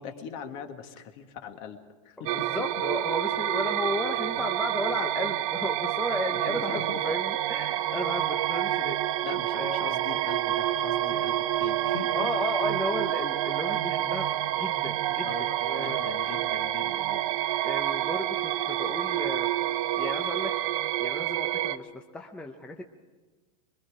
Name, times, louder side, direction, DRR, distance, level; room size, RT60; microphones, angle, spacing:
voice 1, 0.0-2.5 6.5-7.0 9.2-12.2 15.2-17.3, left 7 dB, 40° left, 6 dB, 1.9 m, -41 dB
voice 2, 2.3-9.0 9.5-9.9 12.1-15.3 15.6-16.0 17.6-19.5 20.0-20.5 21.0-22.8, left 1 dB, 5° left, 3 dB, 0.7 m, -34 dB
sound 1, 2.3-21.8, right 13 dB, 50° right, 0.9 m, -28 dB
26.0 x 22.5 x 5.0 m, 1.3 s
supercardioid pair, 165°, 21 cm